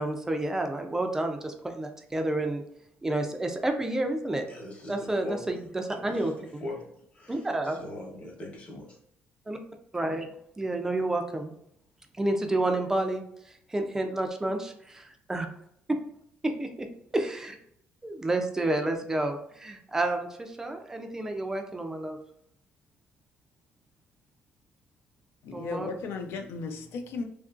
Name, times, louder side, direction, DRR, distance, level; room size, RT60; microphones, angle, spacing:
voice 1, 0.0-2.6 3.0-4.4 4.9-6.6 7.3-7.8 9.5-9.6 9.9-10.3 10.6-11.5 12.2-13.2 13.7-15.5 16.4-16.9 17.1-17.6 18.0-22.2 25.5-25.9, right 2 dB, 10° right, 4 dB, 0.3 m, -30 dB
voice 2, 4.5-6.3 6.6-6.8 7.1-9.0, left 1 dB, 30° left, -2 dB, 0.9 m, -41 dB
voice 3, 25.4-27.2, left 4 dB, 75° left, 6 dB, 0.5 m, -35 dB
2.8 x 2.5 x 2.3 m, 0.72 s
cardioid pair, 145°, 4 cm